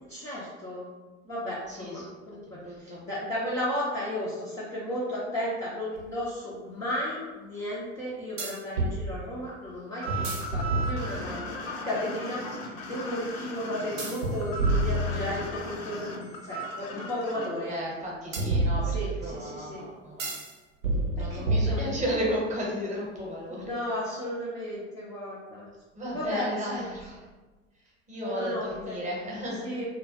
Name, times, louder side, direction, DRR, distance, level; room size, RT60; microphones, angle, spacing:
voice 1, 0.1-0.9 1.2-17.8 18.8-19.9 21.2-21.8 23.5-25.7 26.1-26.9 28.2-29.0 29.6-29.9, left 1 dB, 10° left, -8 dB, 0.3 m, -34 dB
voice 2, 1.7-2.0 2.6-3.0 15.0-15.5 17.7-20.3 21.1-23.7 25.9-27.2 28.1-29.8, equal, 20° right, -4 dB, 0.8 m, -34 dB
sound 1, 6.0-6.1 8.4-9.0 10.1-11.4 14.0-15.7 18.3-19.3 20.2-20.5 20.8-22.2, right 2 dB, 80° right, 0.7 m, -28 dB
sound 2, 10.0-17.5, equal, 55° left, 0.6 m, -37 dB
2.2 x 2.1 x 2.7 m, 1.2 s
figure-of-eight pair, 80°, 39 cm